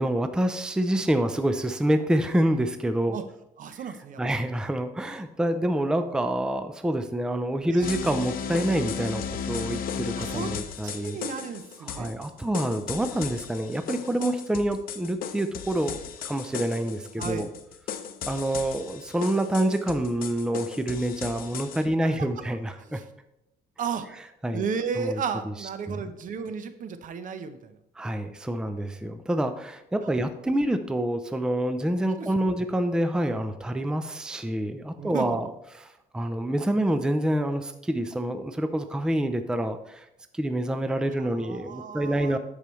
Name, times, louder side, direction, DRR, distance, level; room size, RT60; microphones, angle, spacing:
voice 1, 0.0-3.2 3.8-3.9 4.2-11.2 11.8-17.5 18.3-23.0 24.4-24.6 25.0-26.1 28.0-40.1 40.3-42.4, right 1 dB, 5° right, 8 dB, 0.5 m, -27 dB
voice 2, 3.6-4.2 7.7-7.9 10.2-10.5 10.8-12.1 17.2-17.5 22.9-23.0 23.8-24.1 24.5-27.8 32.2-32.6 35.0-35.5 41.2-42.4, right 6 dB, 50° right, 10 dB, 0.7 m, -34 dB
sound 1, 7.8-21.8, left 7 dB, 60° left, 0.7 m, -36 dB
12.5 x 4.9 x 3.1 m, 0.83 s
cardioid pair, 110°, 17 cm